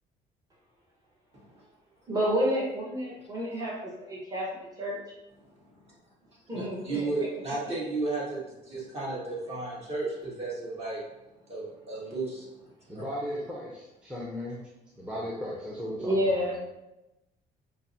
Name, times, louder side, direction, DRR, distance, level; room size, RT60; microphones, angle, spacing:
voice 1, 2.1-5.0 6.5-7.3 16.0-16.6, equal, 20° right, -5 dB, 1.0 m, -29 dB
voice 2, 5.4-5.9 6.5-11.0 11.5-12.5 12.9-13.0, right 3 dB, 40° right, -5 dB, 1.4 m, -34 dB
voice 3, 12.9-14.6 15.0-16.4, equal, 5° right, -6 dB, 0.6 m, -36 dB
5.5 x 2.1 x 2.6 m, 0.96 s
cardioid pair, 110°, 17 cm